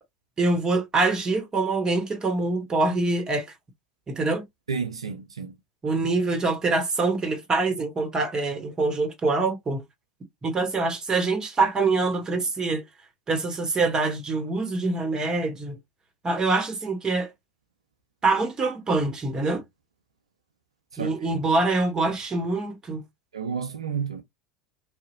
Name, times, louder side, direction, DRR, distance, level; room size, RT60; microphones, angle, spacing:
voice 1, 0.4-3.5 4.1-4.4 5.8-9.8 10.4-12.8 13.3-15.8 16.2-17.3 18.2-19.6 21.0-23.0, right 3 dB, 25° right, 1.1 m, -25 dB
voice 2, 4.7-5.5 20.9-21.1 23.3-24.2, right 6 dB, 80° right, 0.4 m, -31 dB
2.7 x 2.0 x 2.6 m
figure-of-eight pair, 75°, 3 cm